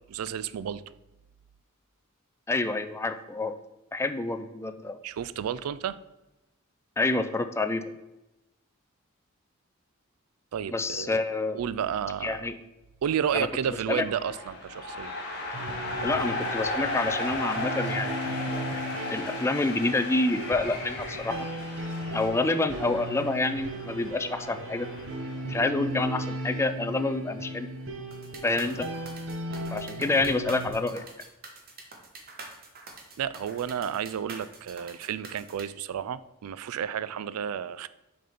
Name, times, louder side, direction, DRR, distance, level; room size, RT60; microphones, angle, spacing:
voice 1, 0.1-0.8 5.0-6.0 10.5-11.2 11.5-12.5 13.0-15.1 33.2-37.9, right 8 dB, 80° right, 16 dB, 0.3 m, -31 dB
voice 2, 2.5-3.6 3.9-5.0 7.0-8.0 10.7-11.6 12.2-12.6 13.3-13.5 13.9-14.0 16.0-18.4 19.1-21.4 22.1-24.9 25.5-27.7 28.4-28.9 29.7-31.0, left 2 dB, 10° left, 9 dB, 0.3 m, -28 dB
sound 1, 13.9-25.4, left 2 dB, 55° left, 2.0 m, -35 dB
sound 2, 15.5-30.7, right 1 dB, 60° right, 0.8 m, -36 dB
sound 3, 28.1-35.6, right 3 dB, 45° right, 1.1 m, -45 dB
6.6 x 4.1 x 5.1 m, 0.99 s
head